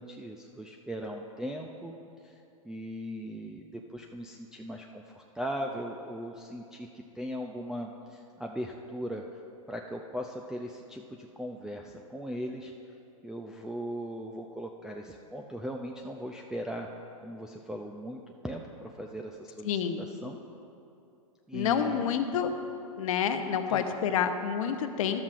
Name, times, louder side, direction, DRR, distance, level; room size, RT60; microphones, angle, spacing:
voice 1, 0.0-1.9 2.2-2.3 2.6-9.2 9.7-12.7 13.2-16.9 17.2-19.7 20.0-20.4 21.5-22.0 23.7-23.8, equal, 5° right, 1 dB, 0.4 m, -38 dB
voice 2, 19.6-20.0 21.5-22.5 23.0-25.2, left 8 dB, 65° left, 7 dB, 0.8 m, -28 dB
13.0 x 12.0 x 2.5 m, 2.6 s
hypercardioid pair, 120°, 18 cm